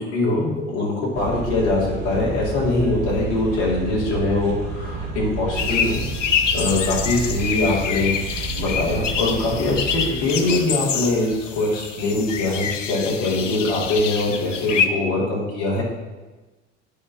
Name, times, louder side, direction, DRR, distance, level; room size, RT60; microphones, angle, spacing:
voice 1, 0.0-6.0 6.5-15.8, left 2 dB, 70° left, -4 dB, 2.6 m, -23 dB
sound 1, 1.1-10.1, right 4 dB, 55° right, 1.2 m, -30 dB
sound 2, 5.6-14.9, left 7 dB, 85° left, 0.6 m, -26 dB
8.3 x 4.4 x 5.7 m, 1.2 s
figure-of-eight pair, 60°, 36 cm